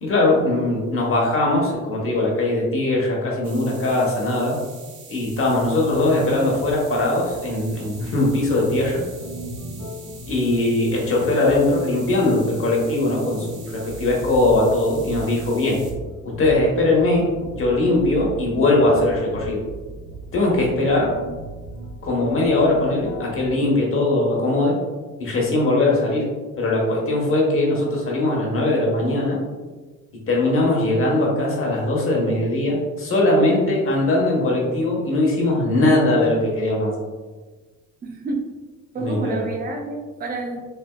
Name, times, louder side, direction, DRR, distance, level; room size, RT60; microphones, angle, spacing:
voice 1, 0.0-4.6 5.1-9.0 10.3-15.8 16.4-17.3 17.6-19.6 20.3-21.1 22.0-24.7 25.2-26.2 26.6-29.4 30.1-37.0 39.0-39.4, left 2 dB, 45° left, -2 dB, 1.0 m, -20 dB
sound 1, 3.4-15.9, right 5 dB, 80° right, 0.9 m, -44 dB
sound 2, 6.8-23.6, right 1 dB, 85° left, 0.5 m, -37 dB
voice 2, 38.0-38.4 38.9-40.6, right 3 dB, 30° right, 1 dB, 0.5 m, -28 dB
3.4 x 2.5 x 2.3 m, 1.3 s
cardioid pair, 90°, 30 cm